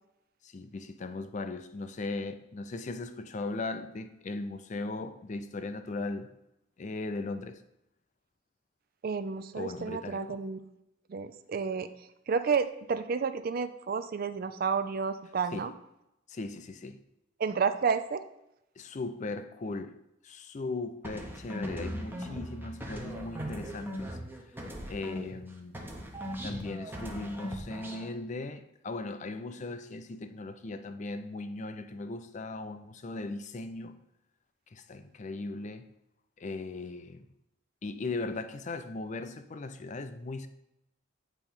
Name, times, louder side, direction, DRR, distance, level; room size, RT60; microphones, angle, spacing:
voice 1, 0.4-6.3 6.8-7.6 9.6-10.4 15.5-15.7 16.3-17.0 18.8-20.0 20.2-24.2 24.9-25.8 26.4-34.0 34.7-35.9 36.4-37.3 37.8-40.5, left 3 dB, 40° left, 0.4 m, -38 dB
voice 2, 9.0-10.6 11.1-11.9 12.3-15.7 17.4-18.2, right 5 dB, 50° right, 0.4 m, -30 dB
sound 1, 21.0-25.5 25.7-28.1, equal, 10° right, 0.8 m, -39 dB
8.6 x 3.0 x 5.4 m
head